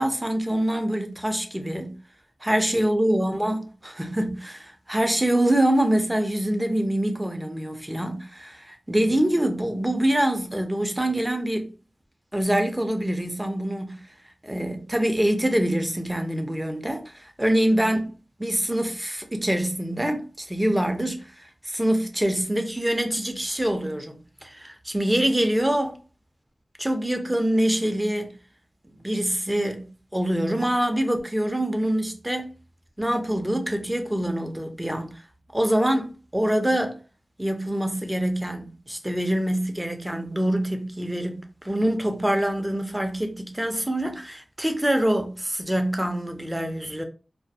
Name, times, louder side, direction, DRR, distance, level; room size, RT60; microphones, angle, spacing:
voice 1, 0.0-2.0 2.4-11.7 12.3-14.0 14.4-18.1 18.4-26.0 26.8-28.3 29.0-32.5 33.0-35.2 35.5-37.0 37.4-47.0, right 1 dB, 15° right, 0.5 m, -25 dB
2.3 x 2.1 x 2.6 m
wide cardioid pair, 50°, 0 cm